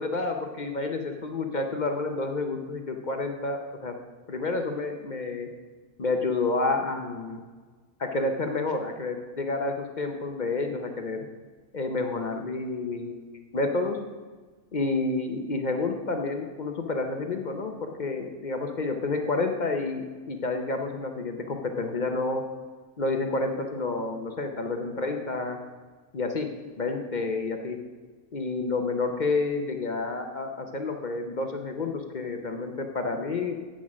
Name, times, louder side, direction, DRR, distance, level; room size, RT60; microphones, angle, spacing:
voice 1, 0.0-3.9 4.3-5.5 6.0-7.4 8.0-11.3 11.7-14.0 14.7-22.4 23.0-25.6 26.1-26.5 26.8-27.8 28.3-33.6, left 3 dB, 45° left, 4 dB, 0.6 m, -29 dB
8.6 x 6.0 x 6.1 m, 1.4 s
omnidirectional pair, 1.6 m